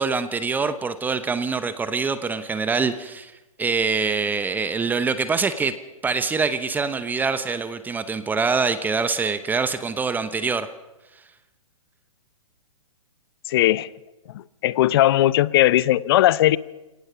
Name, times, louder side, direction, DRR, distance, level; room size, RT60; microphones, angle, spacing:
voice 1, 0.0-3.3 3.6-5.7 6.0-10.7, right 4 dB, 10° right, 11 dB, 0.9 m, -24 dB
voice 2, 13.5-13.9 14.6-16.6, left 14 dB, 45° left, 19 dB, 0.8 m, -18 dB
29.5 x 18.0 x 6.1 m, 1.0 s
hypercardioid pair, 130°, 18 cm